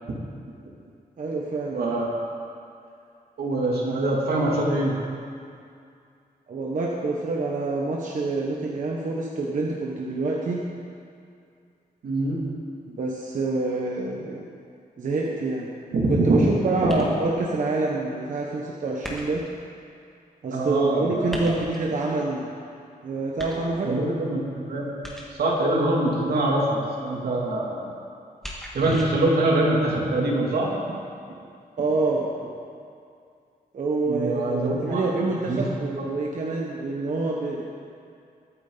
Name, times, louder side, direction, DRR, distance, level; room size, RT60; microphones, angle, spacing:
voice 1, 1.2-1.8 6.5-10.6 13.0-14.4 15.0-15.7 16.1-19.4 20.4-22.5 23.0-24.0 31.8-32.3 33.7-37.6, right 3 dB, 55° right, -3 dB, 1.3 m, -27 dB
voice 2, 1.7-2.3 3.4-5.0 12.0-12.4 15.9-17.1 20.5-21.5 23.8-24.9 25.3-27.9 28.7-30.7 34.1-35.0 35.5-35.7, right 2 dB, 80° right, -3 dB, 2.8 m, -24 dB
sound 1, 16.9-17.4 19.0-19.6 21.3-21.9 23.4-24.0 25.0-25.6 28.4-29.0, equal, ahead, 1.8 m, -38 dB
22.5 x 9.7 x 4.1 m, 2.4 s
wide cardioid pair, 170°, 16 cm